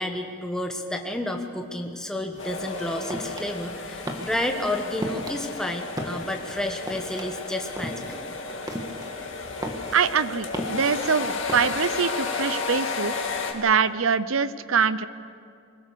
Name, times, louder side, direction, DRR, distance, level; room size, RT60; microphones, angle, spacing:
voice 1, 0.0-8.2, left 1 dB, 5° left, 3 dB, 1.3 m, -31 dB
sound 1, 2.3-11.9, equal, 15° right, 1.6 m, -36 dB
sound 2, 2.4-13.5, left 4 dB, 55° left, 2.2 m, -33 dB
voice 2, 9.9-13.1 13.5-15.1, right 6 dB, 65° right, 15 dB, 0.7 m, -24 dB
24.5 x 17.0 x 6.9 m, 2.3 s
head